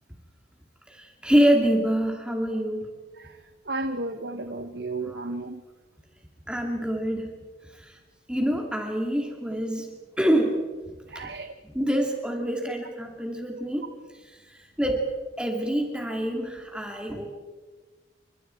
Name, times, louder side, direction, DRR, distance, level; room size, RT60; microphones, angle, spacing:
voice 1, 0.9-2.9 5.0-5.2 6.5-7.4 7.7-8.0 8.3-10.6 11.1-11.3 11.6-13.9 14.3-15.0 15.4-17.3, equal, 5° right, 1 dB, 2.5 m, -26 dB
voice 2, 3.6-5.6 11.1-11.5, right 2 dB, 65° right, 7 dB, 1.3 m, -33 dB
29.5 x 25.5 x 4.6 m, 1.4 s
head